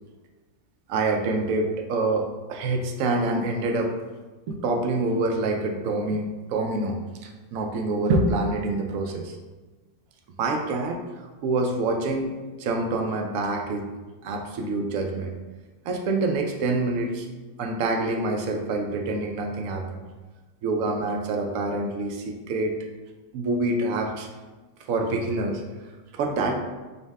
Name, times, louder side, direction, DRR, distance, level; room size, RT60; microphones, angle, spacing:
voice 1, 0.9-3.9 4.5-7.0 7.2-9.4 10.4-11.0 11.4-12.3 12.6-13.9 14.2-15.3 15.8-17.3 17.6-20.0 20.6-22.8 23.3-24.3 24.9-25.6 26.1-26.6, right 2 dB, 70° right, 2 dB, 0.9 m, -26 dB
5.3 x 2.1 x 3.4 m, 1.3 s
omnidirectional pair, 1.7 m